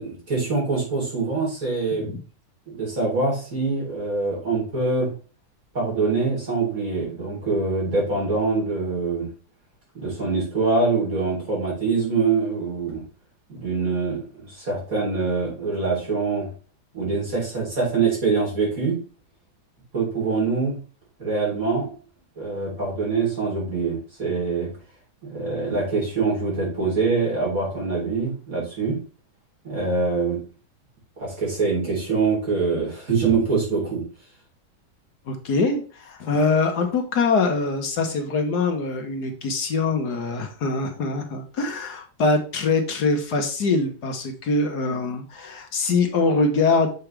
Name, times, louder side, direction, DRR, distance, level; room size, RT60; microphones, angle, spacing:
voice 1, 0.0-2.1 2.7-5.1 5.7-9.3 9.9-13.0 13.5-16.5 16.9-19.0 19.9-20.8 21.2-21.9 22.4-24.7 25.2-29.0 29.6-30.4 31.2-34.0, right 4 dB, 50° right, -4 dB, 4.2 m, -24 dB
voice 2, 35.3-46.9, left 3 dB, 70° left, 4 dB, 1.7 m, -23 dB
7.1 x 5.3 x 3.3 m, 0.38 s
omnidirectional pair, 1.9 m